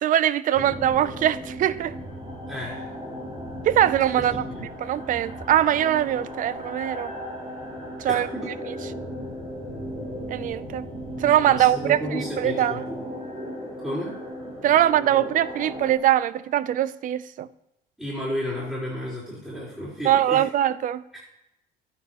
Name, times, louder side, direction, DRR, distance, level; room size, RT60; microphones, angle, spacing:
voice 1, 0.0-2.0 3.6-4.4 4.8-7.1 8.0-8.3 9.0-9.1 10.3-10.9 11.2-12.8 14.6-17.5 20.1-21.0, right 11 dB, 50° right, 0.4 m, -22 dB
sound 1, 0.5-16.0, equal, 30° right, 2.9 m, -36 dB
voice 2, 2.5-2.9 4.2-4.6 8.1-8.5 11.5-13.1 13.8-14.1 18.0-20.5 21.1-21.2, equal, 5° right, 3.9 m, -32 dB
11.5 x 8.5 x 2.9 m
cardioid pair, 110°, 17 cm